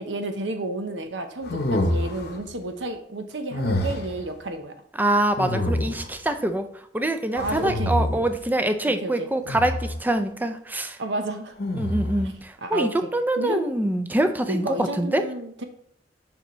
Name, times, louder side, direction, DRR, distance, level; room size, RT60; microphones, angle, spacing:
voice 1, 0.0-4.7 7.3-7.9 9.0-9.3 11.0-11.5 12.6-13.1 13.4-13.7 14.5-15.6, right 2 dB, 90° right, 7 dB, 0.9 m, -31 dB
sound 1, 1.4-2.4 3.5-4.2 5.4-6.2 7.4-8.4 9.5-10.0 11.6-12.3, left 1 dB, 60° left, 0.8 m, -26 dB
voice 2, 5.0-11.0 11.7-15.2, right 1 dB, 10° right, 8 dB, 0.4 m, -25 dB
6.9 x 5.6 x 3.1 m, 0.65 s
head